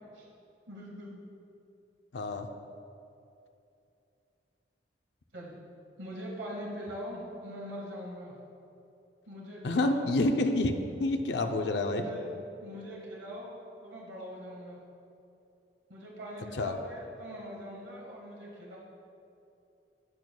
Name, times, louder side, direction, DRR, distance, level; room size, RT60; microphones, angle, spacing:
voice 1, 0.7-1.1 5.3-5.5 6.0-8.3 9.3-10.1 11.7-13.6 13.8-14.8 15.9-18.8, equal, 90° right, -4 dB, 1.6 m, -42 dB
voice 2, 2.1-2.5 9.6-12.0 16.6-16.7, left 2 dB, 70° left, 5 dB, 0.5 m, -28 dB
12.5 x 8.6 x 2.2 m, 2.7 s
head